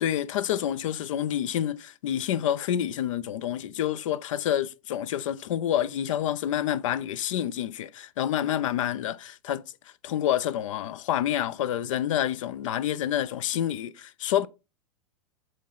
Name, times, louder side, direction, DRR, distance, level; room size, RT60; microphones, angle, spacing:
voice 1, 0.0-9.6 10.0-14.5, left 11 dB, 70° left, 0.5 m, -28 dB
7.5 x 3.3 x 3.9 m
hypercardioid pair, 100°, 17 cm